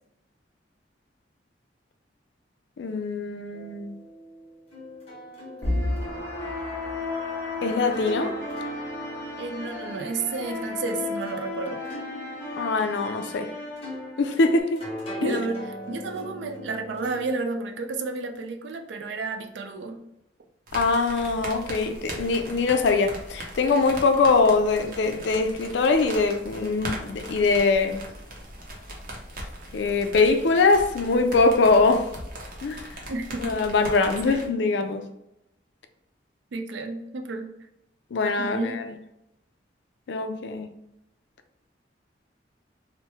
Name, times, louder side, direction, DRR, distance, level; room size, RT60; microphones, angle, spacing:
voice 1, 2.8-4.0 7.6-8.4 12.6-13.5 14.2-14.8 15.2-15.4 20.7-28.0 29.7-32.1 32.6-32.8 33.4-35.0 38.1-38.8 40.1-40.7, left 3 dB, 70° left, 0.4 m, -22 dB
sound 1, 3.5-17.3, equal, 30° left, 1.0 m, -41 dB
sound 2, 5.6-14.6, left 2 dB, 15° left, 0.7 m, -33 dB
voice 2, 9.4-11.8 15.1-20.1 33.1-33.6 34.3-34.4 36.5-37.5 38.4-38.7, right 3 dB, 75° right, 0.4 m, -31 dB
sound 3, 20.7-34.5, right 1 dB, 50° right, 0.7 m, -39 dB
3.0 x 2.1 x 3.4 m
head